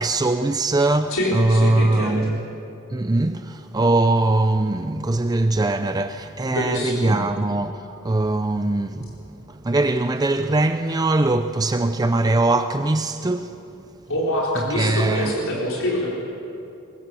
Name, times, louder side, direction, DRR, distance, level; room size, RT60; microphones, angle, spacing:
voice 1, 0.0-2.5 2.9-9.2 9.5-13.8 14.7-15.4, right 2 dB, 15° right, 0.4 m, -21 dB
voice 2, 1.1-2.3 6.5-7.2 14.1-16.1, left 1 dB, 60° left, 4.3 m, -25 dB
23.0 x 21.5 x 7.0 m
head